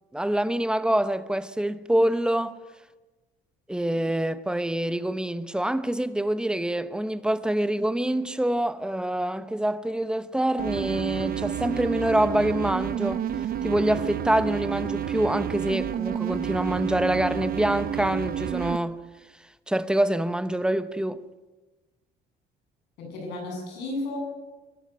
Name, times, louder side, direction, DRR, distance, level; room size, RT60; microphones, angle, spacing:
voice 1, 0.1-2.5 3.7-13.2 13.6-19.0 19.7-21.2, right 1 dB, 5° right, 0.9 m, -26 dB
sound 1, 10.6-18.8, right 9 dB, 60° right, 1.1 m, -30 dB
voice 2, 23.0-24.2, left 2 dB, 85° left, 7.9 m, -33 dB
24.5 x 12.5 x 9.3 m
cardioid pair, 110°, 17 cm